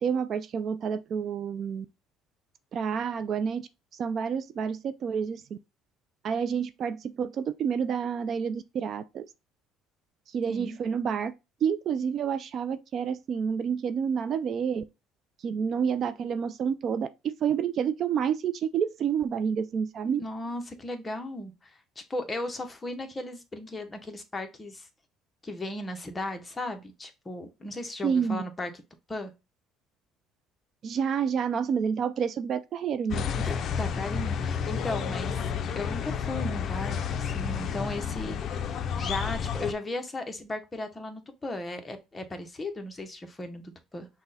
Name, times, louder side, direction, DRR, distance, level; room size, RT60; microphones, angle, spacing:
voice 1, 0.0-1.9 2.7-5.6 6.2-9.3 10.3-11.3 11.6-14.8 15.4-20.2 28.0-28.4 30.8-33.2, right 7 dB, 45° right, 0.3 m, -29 dB
voice 2, 20.0-24.9 25.4-28.7 29.1-29.3 33.3-35.5 35.8-38.4 39.0-44.1, left 2 dB, 15° left, 0.7 m, -36 dB
sound 1, 33.1-39.7, left 7 dB, 45° left, 0.5 m, -31 dB
5.8 x 2.1 x 4.0 m
cardioid pair, 140°, 0 cm